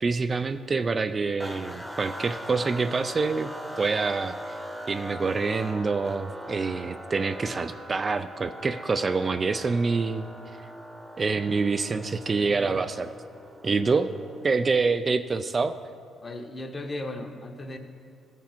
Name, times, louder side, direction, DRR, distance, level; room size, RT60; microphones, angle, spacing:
voice 1, 0.0-3.5 3.8-4.4 4.9-10.3 11.2-13.1 13.6-14.1 14.4-15.8, right 4 dB, 35° right, 10 dB, 0.3 m, -26 dB
sound 1, 1.4-14.8, equal, 5° right, 0.9 m, -41 dB
voice 2, 16.2-17.8, left 2 dB, 30° left, 4 dB, 1.1 m, -37 dB
15.5 x 6.0 x 4.4 m, 2.3 s
cardioid pair, 90°, 0 cm